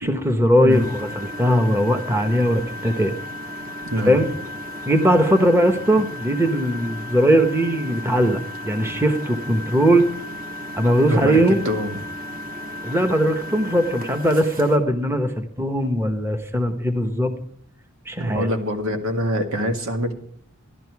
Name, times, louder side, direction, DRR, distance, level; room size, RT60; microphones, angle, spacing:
voice 1, 0.0-3.2 4.0-4.3 4.9-10.1 10.8-11.7 12.8-17.3 18.1-18.5, equal, 10° right, 7 dB, 1.1 m, -20 dB
Engine, 0.7-14.8, left 1 dB, 45° right, 1.8 m, -34 dB
voice 2, 3.9-4.2 11.1-11.4 11.6-12.0 18.2-20.1, equal, 90° right, 5 dB, 2.0 m, -24 dB
13.5 x 11.5 x 4.7 m, 0.67 s
head